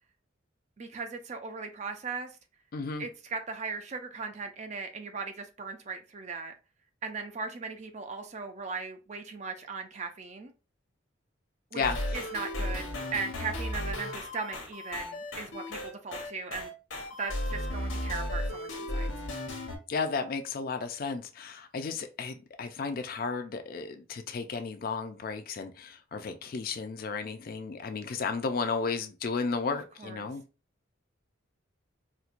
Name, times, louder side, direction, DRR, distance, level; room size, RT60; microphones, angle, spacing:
voice 1, 0.8-2.4 3.0-6.5 7.0-10.5 11.7-11.8 12.1-16.7 17.2-19.1 29.7-30.3, right 4 dB, 35° right, 0.4 m, -38 dB
voice 2, 2.7-3.1 11.7-12.2 19.9-30.4, left 4 dB, 45° left, 0.4 m, -33 dB
sound 1, 11.8-19.8, left 1 dB, 75° left, 0.9 m, -35 dB
4.3 x 2.2 x 2.4 m
head